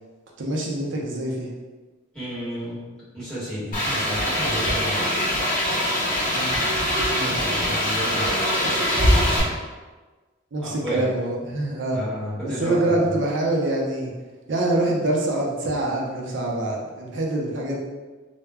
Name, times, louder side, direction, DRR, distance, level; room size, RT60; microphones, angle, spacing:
voice 1, 0.4-1.5 6.3-6.6 7.1-7.4 10.5-12.1 12.4-14.1 14.5-17.8, right 2 dB, 60° right, -2 dB, 0.5 m, -25 dB
voice 2, 2.1-2.9 3.1-5.1 7.2-8.4 10.6-11.0 11.9-13.1, equal, 5° left, -13 dB, 1.1 m, -31 dB
sound 1, 3.7-9.4, equal, 40° left, 0.8 m, -23 dB
2.2 x 2.1 x 3.3 m, 1.3 s
head